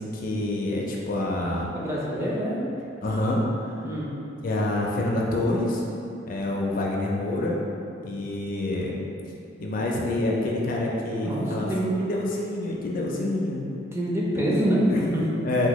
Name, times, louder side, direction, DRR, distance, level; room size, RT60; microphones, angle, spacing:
voice 1, 0.0-1.8 3.0-3.4 4.4-5.8 6.3-7.6 8.0-8.9 9.6-11.7 12.0-13.7 14.9-15.7, left 1 dB, 50° left, -2 dB, 0.4 m, -27 dB
voice 2, 1.7-2.6 3.8-4.1 9.1-9.2 11.2-11.9 13.9-14.8 15.1-15.2, equal, 15° right, -6 dB, 0.4 m, -26 dB
3.4 x 2.2 x 3.0 m, 2.7 s
head